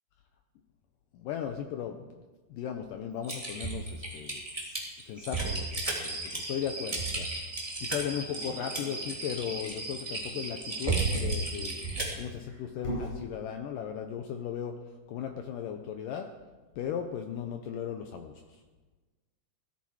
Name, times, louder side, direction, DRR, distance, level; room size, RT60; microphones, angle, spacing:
voice 1, 1.1-2.1 2.5-4.4 5.1-7.3 7.8-11.8 12.2-14.8 15.1-16.3 16.8-18.4, left 8 dB, 85° left, 5 dB, 1.9 m, -37 dB
Typing, 3.2-12.2, right 3 dB, 10° right, 2.4 m, -34 dB
sound 1, 5.4-11.7, right 3 dB, 55° right, 5.0 m, -39 dB
Dog, 8.2-9.8 11.4-13.2, left 1 dB, 45° left, 6.4 m, -41 dB
18.0 x 13.5 x 4.8 m, 1.3 s
omnidirectional pair, 4.8 m